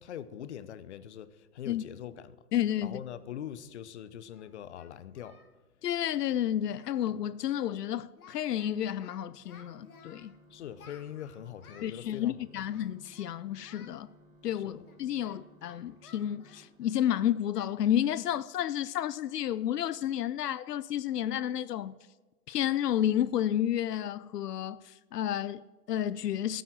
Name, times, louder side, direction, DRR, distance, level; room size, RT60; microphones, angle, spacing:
voice 1, 0.0-2.4 2.8-5.4 10.5-12.4 14.5-14.8, left 10 dB, 45° left, 0.8 m, -42 dB
voice 2, 2.5-3.0 5.8-10.3 11.8-14.1 14.4-21.9 22.5-26.6, left 11 dB, 85° left, 0.6 m, -31 dB
Singing, 3.5-3.6 4.3-5.5 5.8-6.0 6.3-6.4 6.7-7.1 7.3-7.5 7.8-8.7 9.0-10.3 10.8-12.0 12.7-13.3 13.6-14.0 14.4-17.1 17.5-17.7 18.1-18.3 18.7-18.8 19.3-19.5, left 6 dB, 65° left, 2.2 m, -57 dB
sound 1, 9.6-17.6, equal, 35° right, 5.0 m, -60 dB
14.0 x 9.4 x 6.1 m
hypercardioid pair, 160°, 46 cm